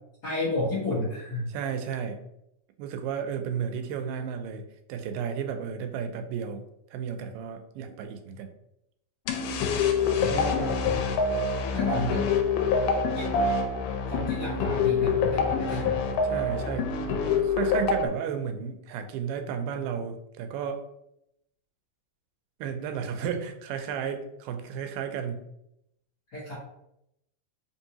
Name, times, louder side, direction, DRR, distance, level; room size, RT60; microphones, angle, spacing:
voice 1, 0.2-1.5 10.3-10.8 11.7-12.3 13.1-13.5 14.1-15.9 26.3-26.5, left 2 dB, 65° left, -8 dB, 1.0 m, -31 dB
voice 2, 1.5-2.2 2.8-4.6 4.9-6.6 6.9-8.5 16.2-16.9 17.4-20.9 22.6-25.4, right 7 dB, 90° right, 6 dB, 2.2 m, -33 dB
sound 1, 9.3-18.1, left 5 dB, 85° left, 2.2 m, -26 dB
5.0 x 2.7 x 2.8 m, 0.80 s
omnidirectional pair, 3.8 m